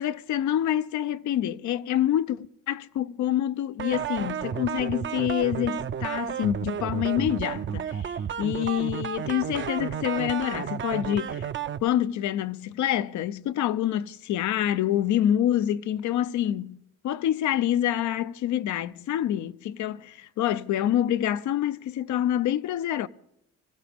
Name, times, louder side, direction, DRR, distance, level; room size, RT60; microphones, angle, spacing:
voice 1, 0.0-11.5 11.8-16.8 17.0-23.1, left 11 dB, 75° left, 0.6 m, -27 dB
sound 1, 3.8-11.8, right 8 dB, 40° right, 0.6 m, -32 dB
25.5 x 16.0 x 3.5 m
cardioid pair, 90°, 30 cm